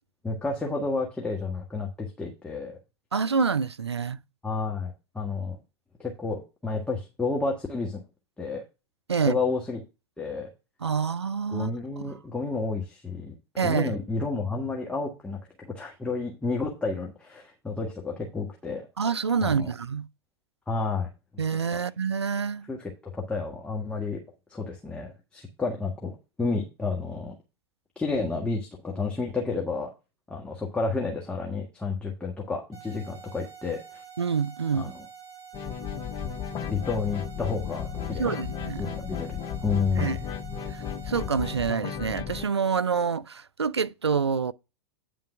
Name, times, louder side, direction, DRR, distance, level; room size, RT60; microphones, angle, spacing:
voice 1, 0.2-2.8 4.4-5.6 6.0-8.0 8.4-8.6 9.2-9.8 10.2-10.5 11.5-13.3 13.6-18.9 19.4-19.7 20.7-21.4 21.7-21.8 22.7-24.2 24.5-26.1 26.4-27.3 27.9-29.9 30.3-34.0 34.7-35.1 36.7-38.4 38.8-40.3, left 4 dB, 10° left, 1.5 m, -31 dB
voice 2, 3.1-4.2 9.1-9.4 10.8-11.7 13.6-13.9 19.0-20.1 21.4-22.7 34.2-34.9 38.2-38.9 40.0-40.2 41.1-44.5, right 6 dB, 80° right, 0.5 m, -27 dB
sound 1, 32.7-41.7, right 7 dB, 25° right, 3.4 m, -47 dB
sound 2, 35.5-42.5, left 8 dB, 30° left, 0.8 m, -34 dB
9.4 x 3.9 x 5.9 m
figure-of-eight pair, 95°, 14 cm